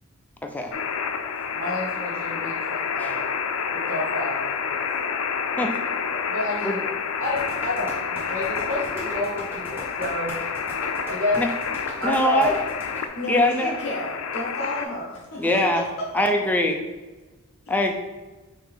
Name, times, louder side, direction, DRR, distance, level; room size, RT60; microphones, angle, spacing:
sound 1, 0.7-14.8, left 6 dB, 80° left, 0.4 m, -29 dB
voice 1, 1.5-3.3 3.9-4.8 6.3-6.8 7.2-10.3 11.1-11.4 12.0-12.5 15.5-15.6, left 1 dB, 80° right, -6 dB, 1.0 m, -29 dB
sound 2, 7.2-13.0, equal, 10° right, 0.9 m, -38 dB
voice 2, 12.0-12.6 13.3-13.8 15.4-15.8 16.1-16.8 17.7-17.9, left 1 dB, 10° left, 3 dB, 0.4 m, -22 dB
voice 3, 13.1-15.5 15.7-16.1 17.7-17.8, left 1 dB, 50° left, -3 dB, 0.7 m, -32 dB
5.7 x 2.7 x 3.4 m, 1.2 s
head